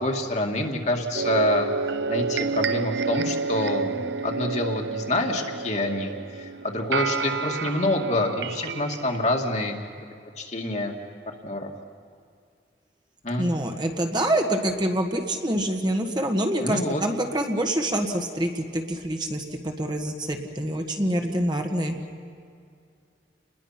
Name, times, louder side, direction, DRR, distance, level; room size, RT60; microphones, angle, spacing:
voice 1, 0.0-1.7 2.1-9.7 10.4-11.0 11.4-11.7 13.2-13.5 16.6-17.0, left 1 dB, 40° left, 1 dB, 2.3 m, -27 dB
sound 1, 1.1-9.3, right 4 dB, 75° right, 0.7 m, -29 dB
voice 2, 13.4-22.0, right 1 dB, 25° right, 3 dB, 1.7 m, -26 dB
29.0 x 21.0 x 5.9 m, 2.3 s
head